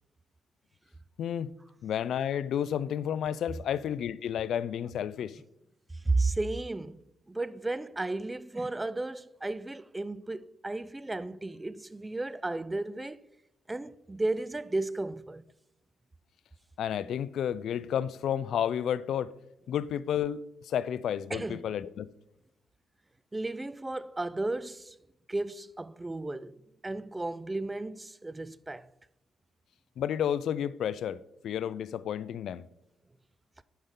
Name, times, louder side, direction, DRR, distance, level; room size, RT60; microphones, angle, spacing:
voice 1, 1.2-1.5 1.8-5.4 16.8-19.3 19.7-22.1 30.0-32.6, left 9 dB, 70° left, 0.3 m, -31 dB
voice 2, 6.0-7.0 7.3-13.2 13.7-15.4 21.3-21.7 23.3-25.0 25.3-28.9, right 2 dB, 15° right, 0.3 m, -34 dB
8.7 x 5.5 x 3.7 m
cardioid pair, 90°, 0 cm